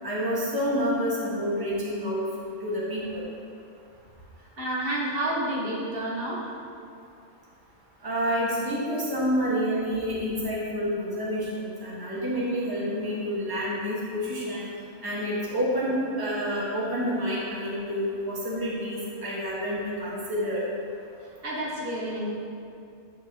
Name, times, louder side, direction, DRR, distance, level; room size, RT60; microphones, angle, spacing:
voice 1, 0.0-2.2 2.6-3.2 8.0-14.6 15.0-20.6, equal, 15° right, -7 dB, 1.5 m, -28 dB
voice 2, 4.6-6.5 21.4-22.4, right 1 dB, 45° right, -4 dB, 1.5 m, -29 dB
9.8 x 6.2 x 2.9 m, 2.4 s
omnidirectional pair, 1.4 m